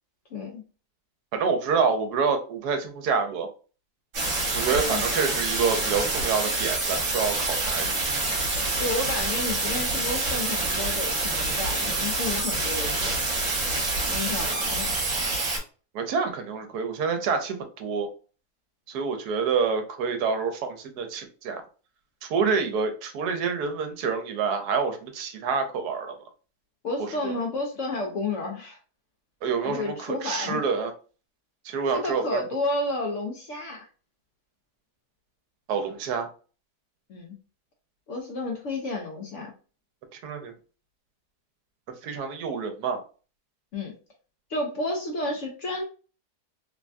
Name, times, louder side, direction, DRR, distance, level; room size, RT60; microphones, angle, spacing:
voice 1, 0.3-0.6 4.9-5.1 8.8-13.1 14.1-14.9 26.8-28.8 29.6-30.6 31.9-33.9 37.1-37.4 38.1-39.5 43.7-43.9 44.5-45.8, left 2 dB, 65° left, 1 dB, 0.8 m, -31 dB
voice 2, 1.3-3.5 4.5-8.0 15.9-18.1 18.9-21.6 22.2-26.2 27.2-27.4 29.4-30.9 31.6-32.4 35.7-36.3 40.1-40.5 42.0-43.0, right 5 dB, 80° right, 6 dB, 1.2 m, -27 dB
sound 1, 4.1-15.6, right 2 dB, 50° right, 1.3 m, -27 dB
3.3 x 2.2 x 2.5 m, 0.37 s
omnidirectional pair, 1.7 m